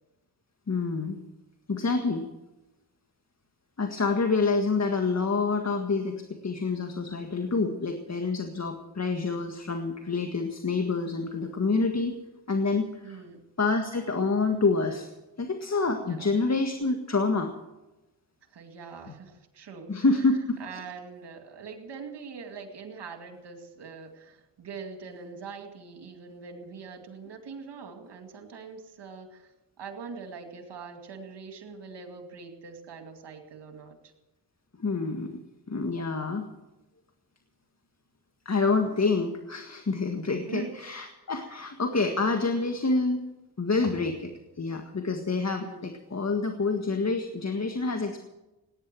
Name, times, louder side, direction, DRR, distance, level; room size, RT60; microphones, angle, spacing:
voice 1, 0.7-1.2 1.7-2.3 3.8-12.2 12.5-13.2 13.6-15.1 15.4-17.5 19.9-20.8 34.8-35.4 35.7-36.5 38.5-43.2 43.6-48.2, left 3 dB, 40° left, 5 dB, 1.8 m, -27 dB
voice 2, 13.0-13.4 16.0-16.3 18.5-20.0 20.6-29.5 29.8-34.1 40.5-40.8 41.5-41.6 45.6-45.9, right 5 dB, 80° right, 5 dB, 2.4 m, -43 dB
18.0 x 9.9 x 7.6 m, 1.0 s
cardioid pair, 50°, 41 cm